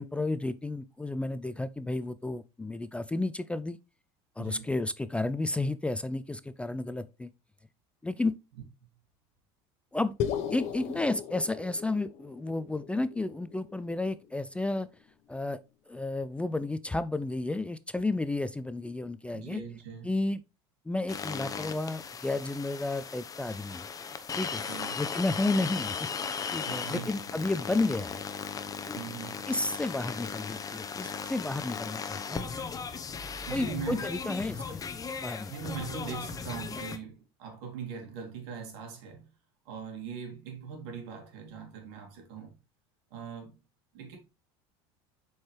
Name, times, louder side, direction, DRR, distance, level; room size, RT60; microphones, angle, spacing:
voice 1, 0.0-3.8 4.4-7.3 8.0-8.4 9.9-10.1 10.5-14.9 15.3-15.6 15.9-19.6 20.0-20.4 20.9-23.9 24.4-24.6 25.0-26.1 26.5-28.2 28.9-29.0 29.5-32.5 33.5-34.8 35.2-35.5, left 2 dB, 10° left, 0.4 m, -32 dB
voice 2, 4.4-4.7 8.8-8.9 19.3-20.1 24.7-25.0 26.6-27.1 28.9-29.5 33.5-34.1 35.5-39.3 39.6-42.6 43.1-43.6 43.9-44.2, right 6 dB, 75° right, 2.4 m, -41 dB
sound 1, 10.2-14.6, left 8 dB, 60° left, 1.0 m, -37 dB
sound 2, 21.1-37.0, left 6 dB, 25° left, 0.9 m, -37 dB
7.1 x 4.8 x 3.2 m
supercardioid pair, 95°, 13 cm